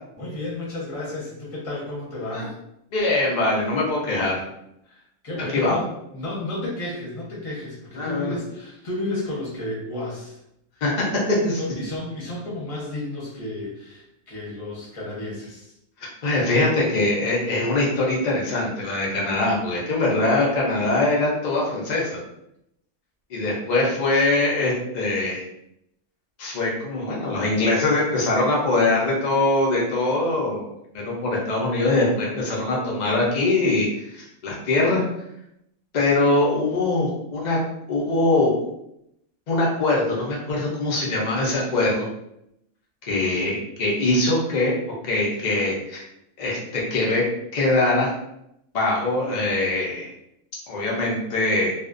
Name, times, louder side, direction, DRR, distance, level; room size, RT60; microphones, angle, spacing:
voice 1, 0.2-2.5 4.9-5.9 6.1-10.4 11.6-15.7, left 2 dB, 35° left, -5 dB, 0.6 m, -32 dB
voice 2, 2.9-4.4 5.5-5.8 8.0-8.3 10.8-11.0 11.4-11.6 16.2-22.2 23.3-25.4 26.4-30.6 30.9-35.0 35.9-37.6 37.9-38.5 39.5-42.1 43.1-44.7 45.0-46.0 46.4-47.2 47.5-48.1 48.7-50.1 50.7-51.7, left 2 dB, 85° left, -4 dB, 0.4 m, -22 dB
2.4 x 2.1 x 2.4 m, 0.80 s
omnidirectional pair, 1.5 m